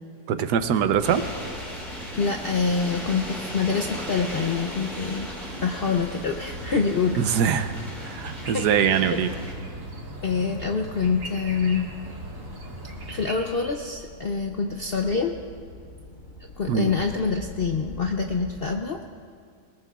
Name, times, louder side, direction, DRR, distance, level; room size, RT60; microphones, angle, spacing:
voice 1, 0.3-1.2 7.2-7.7 8.0-9.3 16.7-16.9, right 8 dB, 90° right, 10 dB, 1.3 m, -23 dB
sound 1, 0.6-18.7, equal, 30° left, 3.8 m, -43 dB
sound 2, 1.0-9.5, equal, ahead, 4.3 m, -37 dB
voice 2, 2.2-5.3 5.6-7.3 8.4-8.7 8.9-9.2 10.2-11.9 13.1-15.4 16.6-19.0, left 5 dB, 55° left, 3 dB, 0.6 m, -26 dB
sound 3, 6.5-13.3, right 1 dB, 55° right, 2.2 m, -39 dB
21.5 x 19.5 x 2.4 m, 2.1 s
omnidirectional pair, 1.7 m